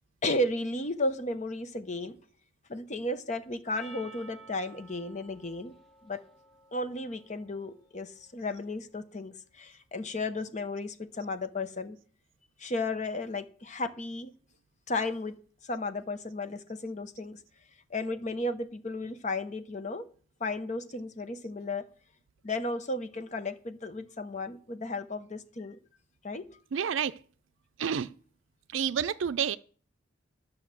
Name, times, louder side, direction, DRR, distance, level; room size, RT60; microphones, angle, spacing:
voice 1, 0.2-2.2 2.7-5.7 6.0-6.2 6.7-12.0 12.6-14.3 14.9-15.4 15.6-17.4 17.9-20.1 20.4-21.9 22.4-25.8 26.2-26.5, left 2 dB, 40° left, 0.8 m, -34 dB
Percussion, 3.7-8.3, right 3 dB, ahead, 1.5 m, -53 dB
voice 2, 26.7-27.2 27.8-28.1 28.7-29.6, right 7 dB, 85° right, 0.4 m, -29 dB
11.5 x 6.4 x 7.5 m
head